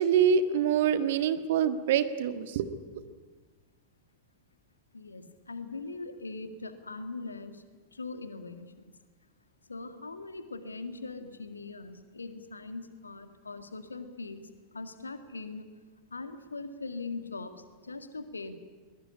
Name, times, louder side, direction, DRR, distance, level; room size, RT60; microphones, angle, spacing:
voice 1, 0.0-2.8, right 8 dB, 55° right, 10 dB, 1.6 m, -25 dB
voice 2, 4.9-7.6 7.9-8.9 9.7-15.7 16.1-18.5, left 3 dB, 80° left, 9 dB, 1.9 m, -41 dB
22.0 x 20.5 x 9.9 m, 1.4 s
figure-of-eight pair, 90°, 0 cm